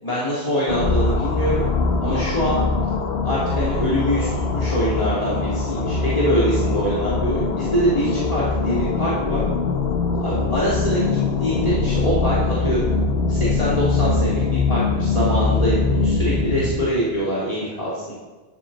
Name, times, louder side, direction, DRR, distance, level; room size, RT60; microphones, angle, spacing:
voice 1, 0.0-1.7 2.0-2.6 3.2-9.4 10.2-12.9 13.3-18.1, right 1 dB, 35° left, -9 dB, 3.5 m, -24 dB
sound 1, 0.7-16.9, left 4 dB, 80° left, 1.5 m, -22 dB
13.5 x 12.0 x 4.2 m, 1.3 s
omnidirectional pair, 1.0 m